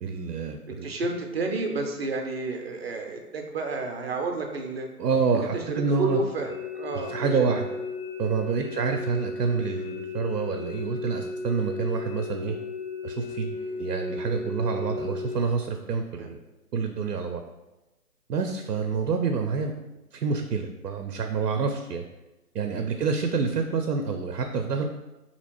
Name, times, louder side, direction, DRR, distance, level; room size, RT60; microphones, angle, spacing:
voice 1, 0.0-0.9 5.0-6.2 7.1-7.7 8.2-12.6 13.0-16.4 16.7-17.4 18.3-19.7 20.1-22.0 22.5-24.8, right 5 dB, 85° right, 5 dB, 0.5 m, -27 dB
voice 2, 0.8-4.9 5.3-7.8 8.6-8.9 13.5-13.8 16.2-16.3 22.7-23.1, right 3 dB, 45° right, 2 dB, 0.5 m, -31 dB
sound 1, 6.5-15.5, left 3 dB, 40° left, 0.4 m, -35 dB
4.1 x 2.9 x 2.8 m, 1.0 s
figure-of-eight pair, 140°, 46 cm